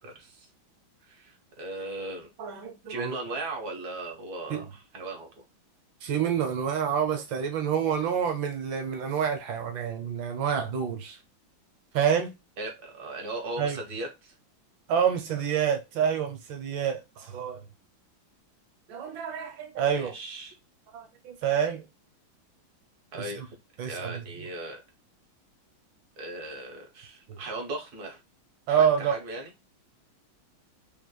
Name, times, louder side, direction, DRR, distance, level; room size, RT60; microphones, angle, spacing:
voice 1, 0.0-0.5 1.0-2.3 2.9-5.4 12.6-14.3 19.9-20.5 23.1-23.6 23.8-24.8 26.2-28.2 28.7-29.5, right 2 dB, 55° right, 1.6 m, -37 dB
voice 2, 2.4-3.2 4.5-4.6 6.0-11.2 11.9-12.3 13.6-13.8 14.9-17.6 18.9-20.1 20.9-21.8 23.1-23.3 23.8-24.2 27.3-27.4 28.7-29.1, right 8 dB, 70° right, 1.6 m, -28 dB
5.4 x 3.1 x 2.2 m
omnidirectional pair, 2.2 m